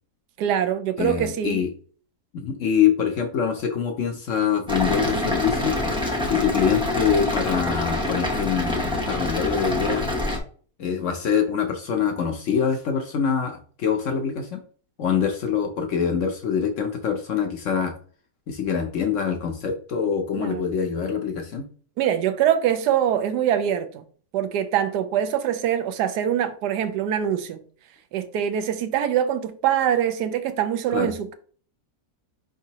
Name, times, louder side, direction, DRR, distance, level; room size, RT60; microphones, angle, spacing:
voice 1, 0.4-1.6 20.4-20.6 22.0-24.0 24.3-27.6 28.1-31.3, right 10 dB, 85° right, 1.2 m, -24 dB
voice 2, 1.0-1.7 2.3-5.8 6.2-10.1 10.8-14.6 15.0-17.9 18.5-21.7 30.9-31.1, left 7 dB, 65° left, 0.8 m, -24 dB
sound 1, 4.7-10.4, left 1 dB, 5° right, 0.4 m, -26 dB
4.8 x 3.7 x 2.8 m
omnidirectional pair, 1.7 m